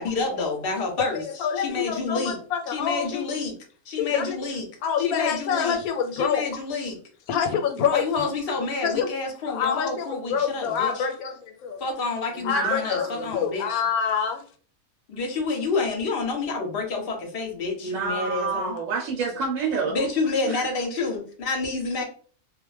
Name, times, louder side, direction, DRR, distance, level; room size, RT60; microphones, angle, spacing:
voice 1, 0.0-1.2 1.6-2.4 2.7-3.5 3.9-4.6 5.0-5.8 6.1-7.0 7.9-11.1 11.8-13.8 15.1-18.8 19.9-22.0, left 3 dB, 50° left, 1 dB, 0.8 m, -28 dB
voice 2, 1.0-3.2 4.0-4.4 4.8-6.5 7.3-8.2 8.8-9.1 9.5-11.8 12.4-14.4, left 7 dB, 85° left, 5 dB, 1.0 m, -26 dB
voice 3, 12.3-13.3 17.8-20.0 20.5-20.6, right 5 dB, 70° right, -1 dB, 0.9 m, -28 dB
2.4 x 2.1 x 3.1 m, 0.43 s
omnidirectional pair, 1.5 m